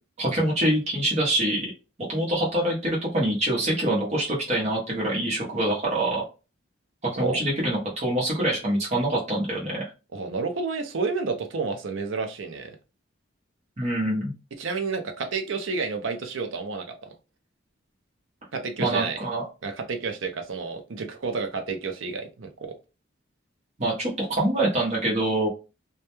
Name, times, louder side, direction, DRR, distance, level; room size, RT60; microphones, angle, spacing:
voice 1, 0.2-1.7 2.1-6.2 7.1-9.8 13.8-14.3 18.8-19.4 23.8-25.5, right 1 dB, 35° right, -4 dB, 0.8 m, -25 dB
voice 2, 10.1-12.8 14.6-17.1 18.5-19.2 19.6-22.7, right 4 dB, 75° right, 6 dB, 0.5 m, -30 dB
2.2 x 2.1 x 2.9 m, 0.30 s
head